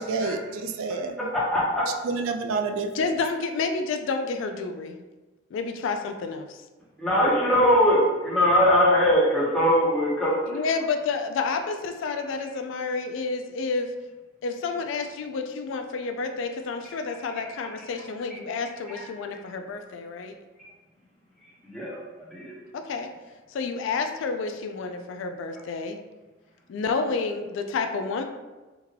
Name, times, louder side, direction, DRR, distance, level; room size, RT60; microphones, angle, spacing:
voice 1, 0.0-1.1 2.1-2.9, right 4 dB, 90° right, 6 dB, 0.3 m, -28 dB
voice 2, 1.2-1.8 7.0-10.6 17.3-17.4 18.9-19.0 21.6-22.0 22.3-22.5, equal, ahead, -7 dB, 0.8 m, -21 dB
voice 3, 2.9-5.0 5.5-6.6 10.5-13.9 14.4-20.4 22.7-23.1 23.5-26.0 26.7-28.2, left 4 dB, 70° left, 7 dB, 0.3 m, -30 dB
3.5 x 2.2 x 3.2 m, 1.2 s
head